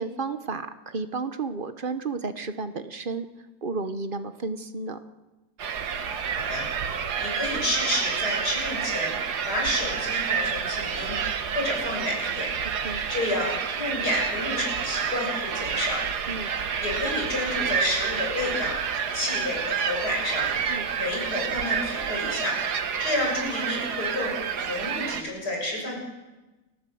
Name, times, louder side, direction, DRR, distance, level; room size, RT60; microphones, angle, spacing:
voice 1, 0.0-3.3 3.6-5.0 12.8-13.0 16.3-16.5 20.7-20.9, right 4 dB, 35° right, 10 dB, 1.0 m, -32 dB
sound 1, 5.6-25.2, right 7 dB, 70° right, 1.7 m, -29 dB
voice 2, 6.3-6.7 7.2-9.2 9.4-11.2 11.5-12.5 13.1-16.0 16.8-18.8 19.1-20.5 21.0-22.5 23.0-24.4 24.6-26.0, left 1 dB, 65° left, -1 dB, 7.2 m, -30 dB
30.0 x 13.5 x 7.8 m, 1.1 s
omnidirectional pair, 1.8 m